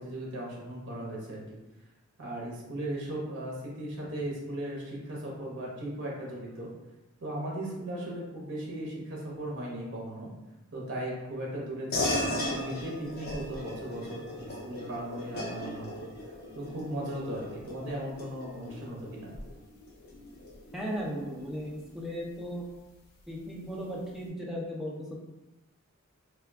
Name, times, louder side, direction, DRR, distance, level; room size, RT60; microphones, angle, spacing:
voice 1, 0.0-1.6 2.2-6.7 7.2-10.3 10.7-16.1 16.5-19.3, right 1 dB, 55° right, -3 dB, 0.8 m, -37 dB
sound 1, 11.9-21.8, left 1 dB, 45° left, 0.5 m, -37 dB
voice 2, 20.7-22.6 23.3-25.2, equal, ahead, -4 dB, 0.4 m, -36 dB
2.2 x 2.2 x 3.4 m, 1.0 s
head